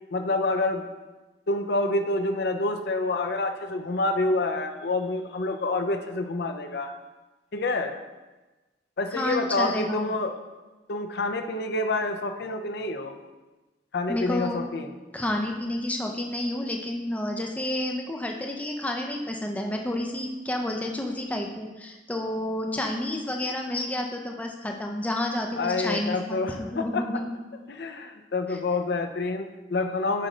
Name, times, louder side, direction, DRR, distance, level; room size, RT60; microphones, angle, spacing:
voice 1, 0.1-0.9 1.5-6.9 7.5-7.9 9.0-10.3 10.9-13.1 13.9-14.9 25.6-27.1 27.7-30.3, left 2 dB, 60° left, 6 dB, 0.5 m, -27 dB
voice 2, 9.1-10.1 14.1-14.6 15.1-27.3 28.5-28.6, left 1 dB, 10° left, 1 dB, 0.5 m, -30 dB
7.5 x 3.3 x 5.0 m, 1.2 s
head